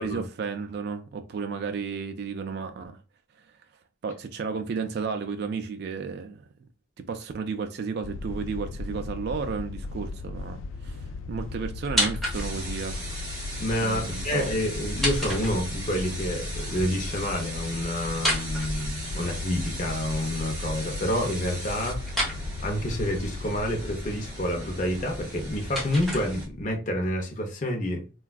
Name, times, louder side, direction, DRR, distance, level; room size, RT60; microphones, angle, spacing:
voice 1, 0.0-3.0 4.0-6.4 7.0-13.0 13.8-14.5, right 5 dB, 55° right, 0.3 m, -33 dB
sound 1, 8.0-24.6, left 3 dB, 85° left, 0.3 m, -37 dB
sound 2, 11.8-12.8 14.8-16.0 18.1-19.4 22.1-22.4 25.1-26.7, equal, ahead, 1.0 m, -30 dB
sound 3, 12.3-26.5, right 1 dB, 15° right, 1.5 m, -38 dB
voice 2, 13.6-28.0, left 1 dB, 40° left, 0.6 m, -29 dB
3.3 x 2.3 x 2.3 m
head